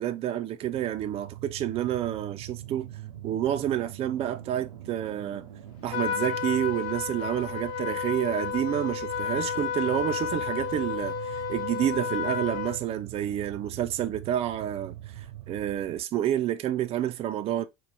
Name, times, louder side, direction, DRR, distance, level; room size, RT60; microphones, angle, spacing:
voice 1, 0.0-2.9 3.2-5.5 5.8-17.7, right 11 dB, 35° right, 0.5 m, -29 dB
sound 1, 0.6-16.0, right 13 dB, 80° right, 0.6 m, -42 dB
Trumpet, 5.9-12.8, left 8 dB, 60° left, 0.7 m, -32 dB
4.1 x 3.0 x 3.3 m
hypercardioid pair, 80°, 17 cm